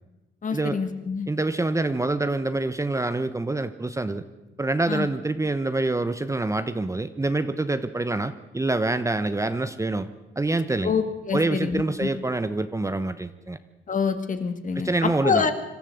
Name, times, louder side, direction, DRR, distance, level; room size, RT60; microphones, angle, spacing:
voice 1, 0.4-1.3 4.9-5.1 10.8-12.1 13.9-14.9 15.2-15.5, left 5 dB, 40° left, 8 dB, 2.1 m, -26 dB
voice 2, 1.3-4.2 4.6-10.1 10.4-10.9 11.3-13.6 14.7-15.5, right 2 dB, 15° right, 11 dB, 1.0 m, -26 dB
25.5 x 13.0 x 7.9 m, 1.1 s
cardioid pair, 90°, 20 cm